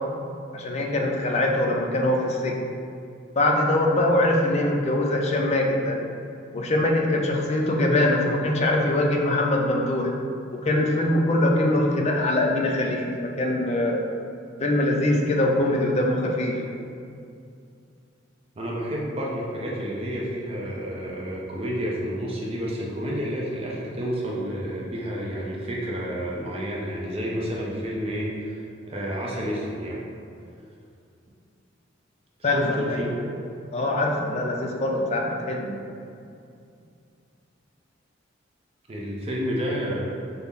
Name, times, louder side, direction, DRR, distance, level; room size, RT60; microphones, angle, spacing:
voice 1, 0.5-2.6 3.4-6.0 6.5-10.1 10.5-14.0 14.6-16.6 32.4-33.1 33.7-35.8, left 1 dB, 35° left, 0 dB, 0.5 m, -23 dB
voice 2, 18.6-30.0 32.4-33.3 38.9-40.1, equal, 30° right, -4 dB, 0.5 m, -30 dB
5.6 x 2.0 x 3.5 m, 2.5 s
head